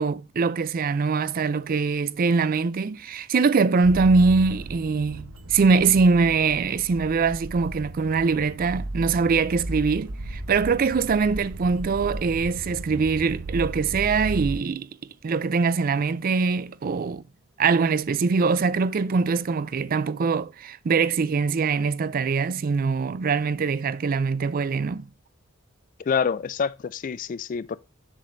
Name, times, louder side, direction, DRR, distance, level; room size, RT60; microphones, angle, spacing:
voice 1, 0.0-14.9 15.2-17.2 17.6-25.1, right 4 dB, 45° right, 0.4 m, -23 dB
sound 1, 3.8-14.6, right 2 dB, 80° right, 0.9 m, -35 dB
voice 2, 26.0-27.8, left 6 dB, 40° left, 0.3 m, -27 dB
7.3 x 6.7 x 2.6 m
head